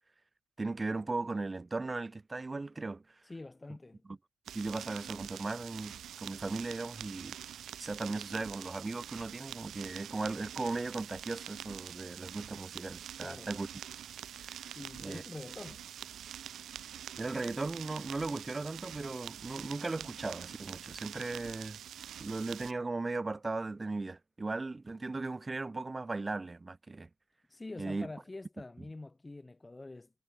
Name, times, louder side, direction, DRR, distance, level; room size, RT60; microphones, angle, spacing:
voice 1, 0.6-3.0 4.1-4.2 4.5-7.4 7.8-13.7 14.4-14.6 15.0-15.2 17.2-21.8 22.2-27.1 27.8-28.1, right 3 dB, 20° right, 1.4 m, -37 dB
voice 2, 3.2-4.0 13.2-13.5 14.8-15.8 27.5-30.1, left 2 dB, 15° left, 4.4 m, -46 dB
sound 1, 4.5-22.7, right 10 dB, 65° right, 1.1 m, -46 dB
cardioid pair, 90°, 0 cm